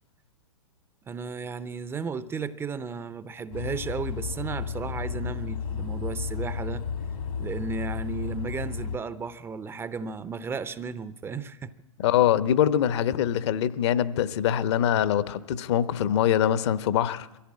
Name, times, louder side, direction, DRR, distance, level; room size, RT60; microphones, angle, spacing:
voice 1, 1.1-6.9 7.4-11.7, right 5 dB, 15° right, 0.6 m, -34 dB
sound 1, 3.5-9.0, left 6 dB, 70° left, 2.3 m, -33 dB
voice 2, 12.0-17.3, left 10 dB, 50° left, 1.0 m, -23 dB
22.5 x 15.0 x 8.5 m
hypercardioid pair, 115°, 18 cm